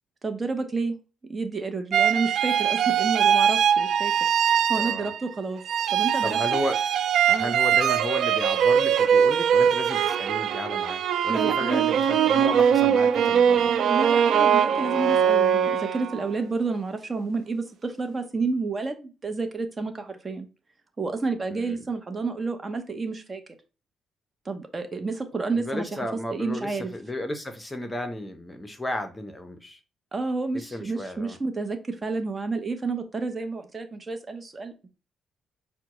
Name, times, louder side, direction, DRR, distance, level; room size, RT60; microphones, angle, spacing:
voice 1, 0.2-1.0 1.3-4.1 4.4-5.6 5.9-6.6 7.3-7.6 11.3-11.8 13.9-20.5 21.0-23.4 24.5-26.9 30.1-34.9, right 3 dB, 30° right, 0.7 m, -30 dB
sound 1, 1.9-5.3 5.7-16.3, right 8 dB, 70° right, 0.3 m, -22 dB
voice 2, 4.7-5.1 6.2-6.8 7.3-13.7 21.5-21.8 25.5-29.8 30.5-31.4, left 1 dB, 15° left, 0.7 m, -33 dB
5.8 x 2.2 x 3.0 m
cardioid pair, 90°, 0 cm